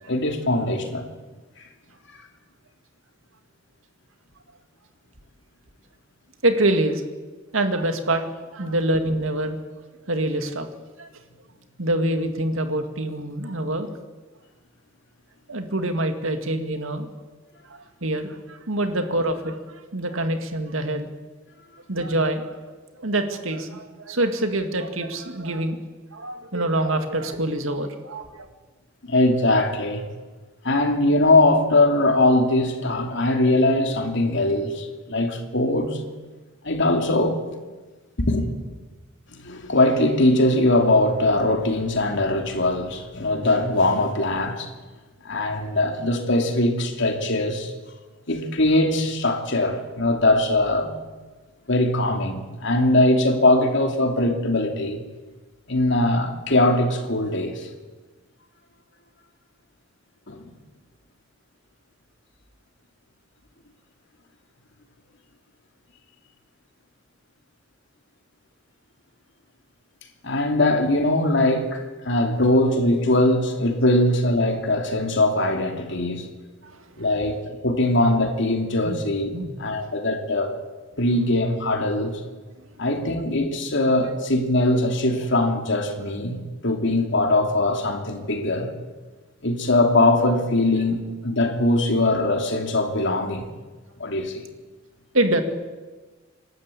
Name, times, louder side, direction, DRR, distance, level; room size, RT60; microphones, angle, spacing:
voice 1, 0.1-1.1 8.6-8.7 29.1-30.0 30.6-36.0 36.6-37.4 38.2-38.5 39.4-44.7 45.2-47.7 48.3-50.9 51.7-55.0 55.7-57.7 60.3-60.5 70.2-76.3 77.0-79.3 79.6-80.6 81.0-82.2 82.8-86.4 86.6-88.7 89.4-93.4 94.0-94.4, left 2 dB, 60° left, 2.8 m, -21 dB
voice 2, 6.4-7.0 7.5-9.6 10.1-10.7 11.0-11.1 11.8-13.9 15.5-17.1 17.7-21.1 21.9-25.8 26.1-28.5 76.6-77.0 78.8-79.0 79.3-79.6 82.6-82.7 95.1-95.4, right 1 dB, 80° right, 2.2 m, -25 dB
26.5 x 12.5 x 8.5 m
head